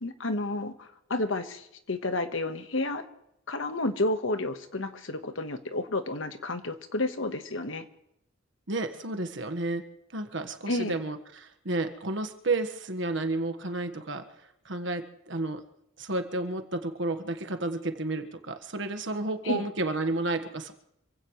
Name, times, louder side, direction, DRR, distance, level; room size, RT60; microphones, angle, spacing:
voice 1, 0.0-3.0 3.5-7.8 10.7-11.0 19.4-19.6, left 2 dB, 70° left, 8 dB, 1.4 m, -31 dB
voice 2, 8.7-15.6 16.0-20.7, right 2 dB, 60° right, 7 dB, 1.5 m, -32 dB
27.0 x 16.5 x 3.2 m, 0.78 s
head